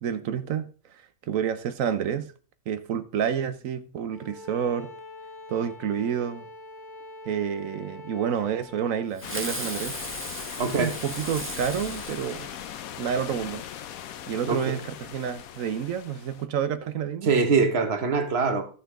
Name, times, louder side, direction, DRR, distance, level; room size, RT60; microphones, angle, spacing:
voice 1, 0.0-2.3 2.7-4.9 5.5-6.5 7.2-10.0 10.6-12.5 13.0-13.6 14.3-17.3, right 8 dB, 70° right, 1.1 m, -29 dB
Bowed string instrument, 4.1-9.1, left 2 dB, 20° left, 1.3 m, -44 dB
sound 1, 9.2-16.5, left 10 dB, 75° left, 1.1 m, -39 dB
Fireworks, 9.2-13.1, right 1 dB, 10° right, 0.8 m, -37 dB
voice 2, 10.6-10.9 14.5-14.8 17.2-18.7, right 4 dB, 50° right, 1.3 m, -23 dB
13.5 x 6.1 x 3.6 m
omnidirectional pair, 1.5 m